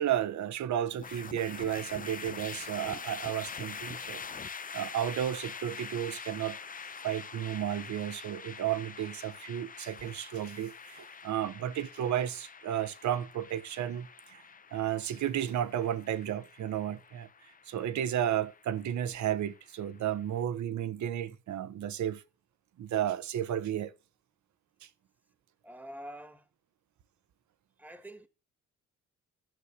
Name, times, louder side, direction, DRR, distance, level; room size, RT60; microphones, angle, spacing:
voice 1, 0.0-4.4 4.7-6.6 7.0-14.4 14.7-17.3 17.7-22.2 22.8-23.9, right 10 dB, 70° right, 1.1 m, -33 dB
sound 1, 1.0-20.2, left 6 dB, 30° left, 0.7 m, -45 dB
voice 2, 25.6-26.5 27.8-28.3, equal, 5° right, 1.3 m, -46 dB
11.0 x 6.5 x 8.2 m
cardioid pair, 90°, 30 cm